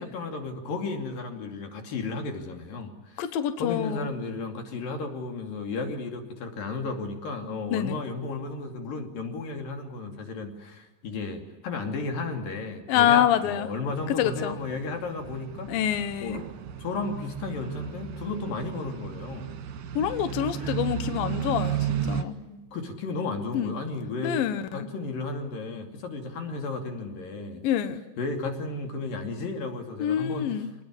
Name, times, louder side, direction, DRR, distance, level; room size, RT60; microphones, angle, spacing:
voice 1, 0.0-3.3 3.6-15.7 16.2-16.4 16.8-19.5 20.6-20.8 22.5-24.4 24.7-27.6 28.2-30.5, left 3 dB, 50° left, 4 dB, 3.9 m, -34 dB
voice 2, 3.2-4.1 7.7-8.0 12.9-13.7 14.1-14.6 15.7-16.4 19.9-22.4 23.5-23.7 24.2-24.9 27.6-28.0 30.0-30.7, left 10 dB, 80° left, 11 dB, 2.0 m, -26 dB
sound 1, 13.9-22.2, right 9 dB, 55° right, 2.7 m, -34 dB
26.0 x 19.5 x 9.8 m, 1.1 s
omnidirectional pair, 5.6 m